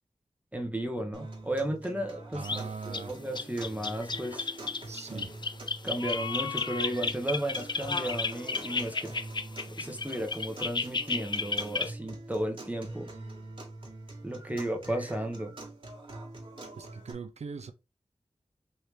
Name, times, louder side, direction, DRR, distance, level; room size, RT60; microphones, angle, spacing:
voice 1, 0.5-4.5 5.8-9.1 9.7-13.1 14.2-15.5, right 1 dB, 15° right, 0.9 m, -34 dB
sound 1, 1.1-17.1, right 2 dB, 50° right, 1.4 m, -45 dB
voice 2, 2.3-3.2 4.9-5.3 16.8-17.7, right 5 dB, 70° right, 0.5 m, -40 dB
sound 2, 2.4-2.6 2.9-3.0 3.3-11.9, left 4 dB, 40° left, 0.4 m, -33 dB
3.3 x 2.8 x 3.1 m
cardioid pair, 50°, 12 cm